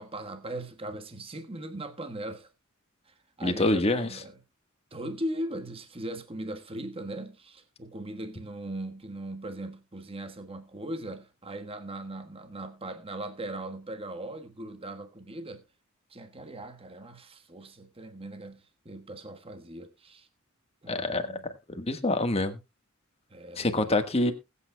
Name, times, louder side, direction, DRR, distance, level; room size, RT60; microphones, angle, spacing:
voice 1, 0.0-2.5 3.1-4.4 4.9-15.6 16.1-20.3 20.8-21.5 23.3-24.0, right 1 dB, 25° right, 1.3 m, -39 dB
voice 2, 3.4-4.1 20.9-21.3 21.7-22.6 23.6-24.3, left 2 dB, 30° left, 1.4 m, -26 dB
21.0 x 8.5 x 2.2 m
head